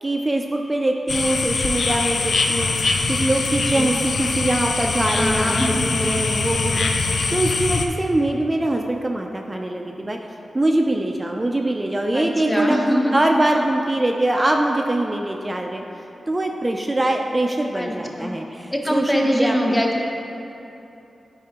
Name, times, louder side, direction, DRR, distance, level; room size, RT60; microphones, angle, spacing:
voice 1, 0.0-10.2 10.5-12.8 13.1-15.8 16.3-19.8, right 1 dB, 25° right, 2 dB, 0.4 m, -23 dB
sound 1, 1.1-7.9, left 4 dB, 75° left, 0.4 m, -23 dB
voice 2, 5.1-5.8 12.1-13.1 17.7-18.3 18.7-20.0, equal, 20° left, 0 dB, 0.9 m, -23 dB
9.1 x 4.8 x 2.9 m, 2.9 s
cardioid pair, 50°, 0 cm